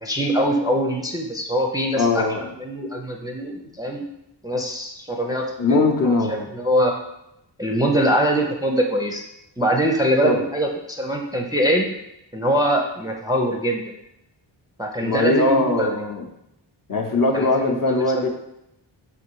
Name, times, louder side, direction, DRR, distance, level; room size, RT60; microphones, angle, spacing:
voice 1, 0.0-2.2 2.6-4.0 4.4-6.1 6.5-6.9 7.6-9.2 9.6-11.9 12.3-13.8 14.8-15.9 17.3-18.0, equal, 10° right, 0 dB, 0.4 m, -23 dB
voice 2, 2.0-2.5 5.6-6.5 10.2-10.4 15.0-16.3 16.9-18.3, left 3 dB, 45° left, 2 dB, 0.7 m, -20 dB
4.0 x 2.6 x 4.6 m, 0.84 s
cardioid pair, 75°, 45 cm